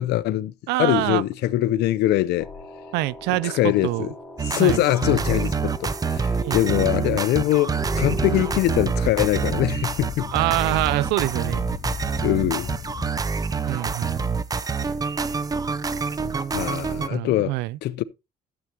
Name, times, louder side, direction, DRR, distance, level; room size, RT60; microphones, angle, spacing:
voice 1, 0.0-0.5 0.8-2.5 3.3-4.1 4.4-10.3 12.2-12.7 16.5-18.0, left 15 dB, 75° left, 0.6 m, -23 dB
voice 2, 0.7-1.2 2.9-3.6 3.8-4.1 4.5-4.8 6.4-6.8 10.3-11.6 13.7-14.4 17.1-17.8, right 18 dB, 90° right, 0.4 m, -25 dB
sound 1, 2.4-8.8, equal, 5° right, 5.7 m, -38 dB
sound 2, 4.4-17.1, right 5 dB, 20° right, 0.6 m, -26 dB
sound 3, 7.8-13.1, left 7 dB, 30° left, 0.6 m, -36 dB
12.5 x 8.0 x 2.9 m
cardioid pair, 110°, 17 cm